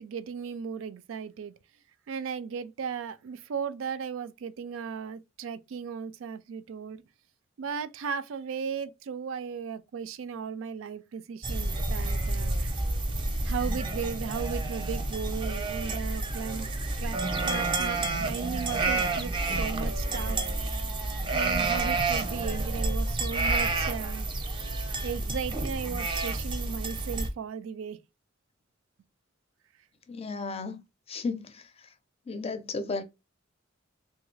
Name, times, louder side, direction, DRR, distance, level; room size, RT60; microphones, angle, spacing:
voice 1, 0.0-1.5 2.1-7.0 7.6-12.7 13.4-16.7 17.0-17.2 17.4-20.5 21.3-24.3 25.0-28.0, right 6 dB, 85° right, 0.4 m, -36 dB
sound 1, 11.4-27.3, right 2 dB, 25° right, 0.5 m, -29 dB
voice 2, 30.1-30.8 31.1-31.6 32.3-33.0, left 3 dB, 30° left, 0.5 m, -34 dB
3.2 x 2.3 x 3.1 m
head